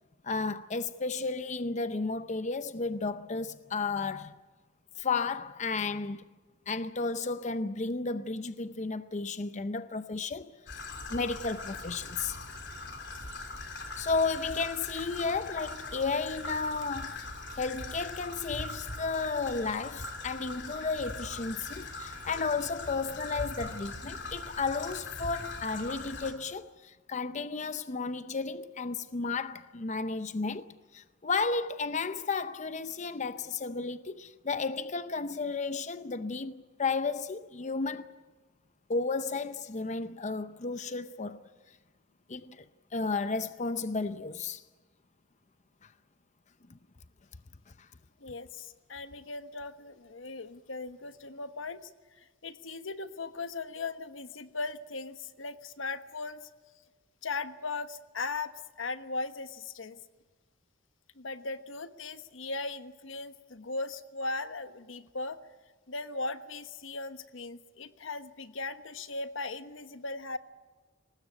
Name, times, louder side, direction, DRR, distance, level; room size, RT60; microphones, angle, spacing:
voice 1, 0.2-4.3 5.0-6.2 6.7-10.5 11.1-12.4 14.0-38.1 38.9-41.5 42.3-42.7 42.9-44.6, left 4 dB, 40° left, 0.7 m, -33 dB
Traffic noise roadway noise / Trickle dribble, 10.7-26.3, left 2 dB, 65° left, 3.3 m, -41 dB
voice 2, 48.2-51.9 52.2-56.5 57.2-60.0 61.2-65.4 65.9-70.4, left 3 dB, 85° left, 1.2 m, -38 dB
23.0 x 19.5 x 9.4 m
head